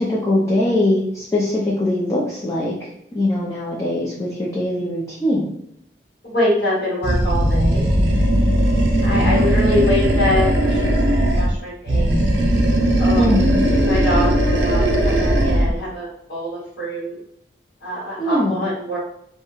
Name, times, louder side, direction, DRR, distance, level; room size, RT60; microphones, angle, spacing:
voice 1, 0.0-2.7 3.1-5.5 9.1-9.8 13.1-13.7 18.2-18.7, left 1 dB, 15° left, -5 dB, 0.4 m, -21 dB
voice 2, 6.2-7.8 9.0-12.1 13.0-17.2 17.8-19.0, left 1 dB, 80° left, -10 dB, 1.1 m, -24 dB
Animal, 7.0-11.6 11.9-15.8, right 1 dB, 75° right, 0.5 m, -18 dB
2.3 x 2.1 x 3.0 m, 0.73 s
head